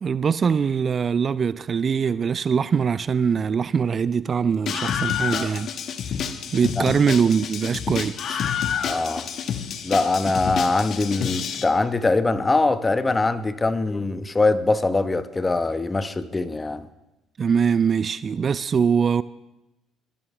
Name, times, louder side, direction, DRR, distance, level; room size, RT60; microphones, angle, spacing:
voice 1, 0.0-5.7 6.5-8.4 17.4-19.2, right 6 dB, 40° right, 0.4 m, -22 dB
Screaming, 4.7-11.6, left 8 dB, 55° left, 1.0 m, -28 dB
voice 2, 8.8-9.3 9.8-16.9, left 3 dB, 20° left, 1.0 m, -22 dB
21.5 x 11.5 x 3.3 m
hypercardioid pair, 60°, 0 cm